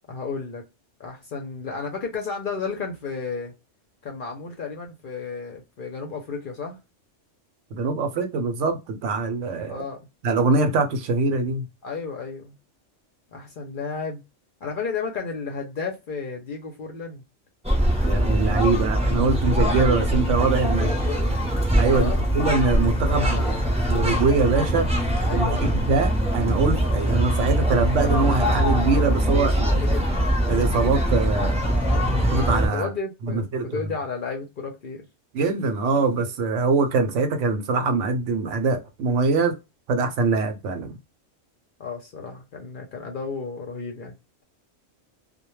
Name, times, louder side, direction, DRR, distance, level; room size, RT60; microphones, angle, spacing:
voice 1, 0.1-0.6 1.0-3.5 4.0-6.8 9.7-10.0 11.8-12.5 13.3-14.2 14.6-17.2 20.8-21.4 21.9-22.2 23.1-23.8 25.2-25.8 29.8-30.1 31.8-32.2 32.7-35.0 41.8-44.1, left 5 dB, 55° left, 0.6 m, -33 dB
voice 2, 7.7-9.8 10.2-11.7 18.0-20.9 21.7-23.4 23.9-24.9 25.3-29.8 30.5-31.6 32.3-32.9 33.3-33.8 35.3-39.6 39.9-40.9, right 3 dB, 75° right, 0.9 m, -23 dB
sound 1, 17.6-32.7, equal, 10° right, 0.5 m, -22 dB
2.2 x 2.1 x 3.0 m
omnidirectional pair, 1.3 m